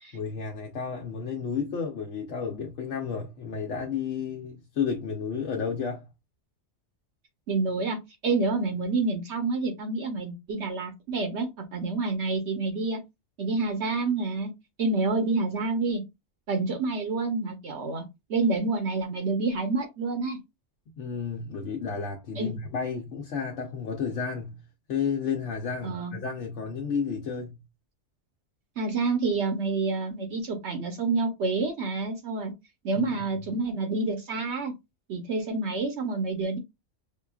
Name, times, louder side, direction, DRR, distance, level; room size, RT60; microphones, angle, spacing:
voice 1, 0.1-6.1 21.0-24.6 24.9-27.6 33.0-33.2, left 6 dB, 75° left, 1.0 m, -32 dB
voice 2, 7.5-8.0 8.2-13.0 13.4-14.5 14.8-16.0 16.5-18.0 18.3-20.4 22.4-22.6 25.8-26.2 28.8-32.5 32.8-34.7 35.1-36.6, right 3 dB, 65° right, 1.0 m, -28 dB
5.6 x 2.3 x 2.3 m
omnidirectional pair, 1.3 m